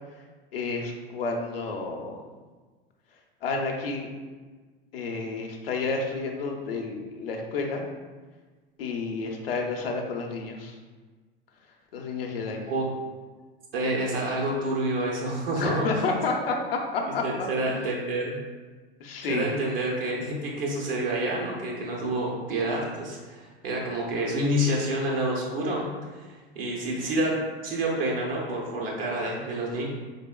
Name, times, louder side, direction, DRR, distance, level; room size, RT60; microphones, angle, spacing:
voice 1, 0.5-2.2 3.4-4.1 4.9-7.8 8.8-10.8 11.9-12.6 15.6-17.8 19.0-19.5, left 3 dB, 80° left, 1 dB, 0.7 m, -30 dB
voice 2, 13.7-16.1 17.2-18.4 19.3-25.9 26.2-29.9, right 1 dB, 75° right, -2 dB, 0.8 m, -28 dB
3.9 x 3.5 x 2.2 m, 1.3 s
figure-of-eight pair, 80°, 29 cm